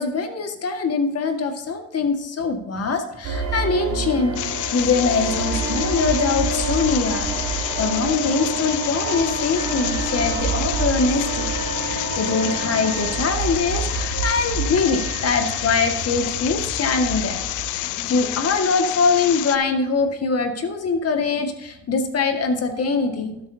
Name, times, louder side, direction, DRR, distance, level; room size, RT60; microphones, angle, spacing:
voice 1, 0.0-11.5 11.8-17.5 17.7-23.4, left 4 dB, 50° left, 5 dB, 1.9 m, -23 dB
sound 1, 3.2-18.5, right 4 dB, 80° right, 2.2 m, -28 dB
sound 2, 4.4-19.6, left 15 dB, 70° left, 0.5 m, -29 dB
12.5 x 8.3 x 2.8 m, 0.92 s
cardioid pair, 90°, 31 cm